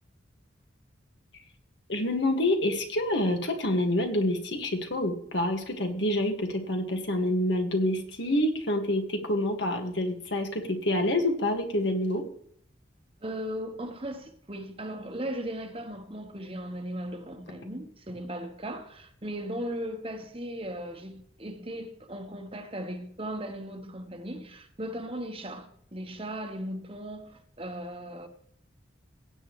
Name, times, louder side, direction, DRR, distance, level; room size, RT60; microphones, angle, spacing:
voice 1, 1.9-12.2, left 1 dB, 65° left, 1.9 m, -27 dB
voice 2, 13.2-28.3, equal, 30° right, 1.2 m, -37 dB
16.5 x 8.3 x 3.2 m
head